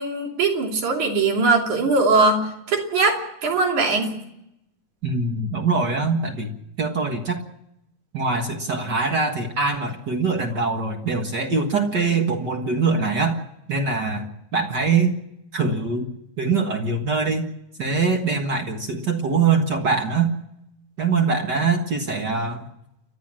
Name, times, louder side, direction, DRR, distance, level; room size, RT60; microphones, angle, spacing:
voice 1, 0.0-4.2, right 3 dB, 70° right, 2 dB, 4.3 m, -21 dB
voice 2, 5.0-7.4 8.1-13.4 13.7-15.1 15.5-16.1 16.4-17.5 17.8-20.3 21.0-22.7, right 4 dB, 45° right, 4 dB, 1.7 m, -23 dB
29.5 x 12.5 x 7.5 m, 0.82 s
omnidirectional pair, 3.6 m